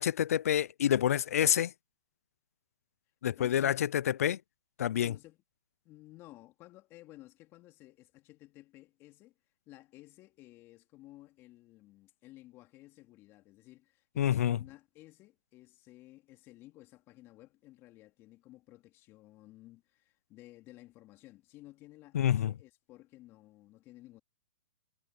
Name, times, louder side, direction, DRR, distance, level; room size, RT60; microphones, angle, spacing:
voice 1, 0.0-1.7 3.2-4.4 4.8-5.1 14.2-14.6 22.1-22.5, left 10 dB, 75° left, 0.5 m, -28 dB
voice 2, 3.4-3.9 5.0-5.4 5.8-9.3 9.7-24.2, left 17 dB, 30° left, 3.4 m, -55 dB
hypercardioid pair, 140°, 8 cm